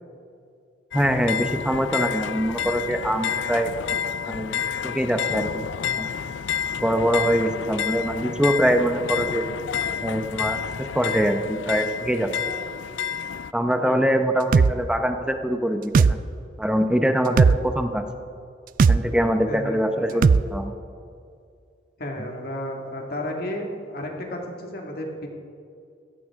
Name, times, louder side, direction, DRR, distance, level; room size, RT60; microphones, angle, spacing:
sound 1, 0.9-13.5, left 7 dB, 90° left, 0.4 m, -29 dB
voice 1, 0.9-3.7 4.3-6.1 6.8-9.4 10.0-12.3 13.5-16.2 16.6-18.0 18.9-20.7, equal, 5° right, 6 dB, 0.8 m, -24 dB
sound 2, 14.5-14.7 15.9-16.1 17.4-17.6 18.8-19.0 20.2-20.4, right 5 dB, 50° right, 0.3 m, -15 dB
voice 2, 19.5-20.3 22.0-25.3, left 1 dB, 55° left, 1 dB, 2.0 m, -33 dB
16.5 x 14.5 x 3.7 m, 2.4 s
head